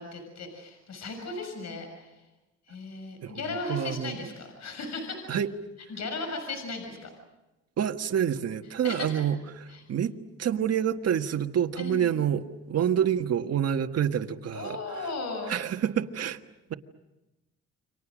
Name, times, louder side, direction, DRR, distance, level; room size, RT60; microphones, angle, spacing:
voice 1, 0.0-2.2 2.7-5.4 5.9-7.1 8.8-9.2 9.7-9.8 11.8-12.1 14.5-15.5, left 3 dB, 60° left, 5 dB, 6.8 m, -36 dB
voice 2, 3.7-4.2 5.3-5.5 7.8-10.1 10.4-12.4 12.7-15.1 15.5-16.4, right 9 dB, 55° right, 6 dB, 1.6 m, -27 dB
30.0 x 25.0 x 6.3 m, 1.0 s
cardioid pair, 90°, 30 cm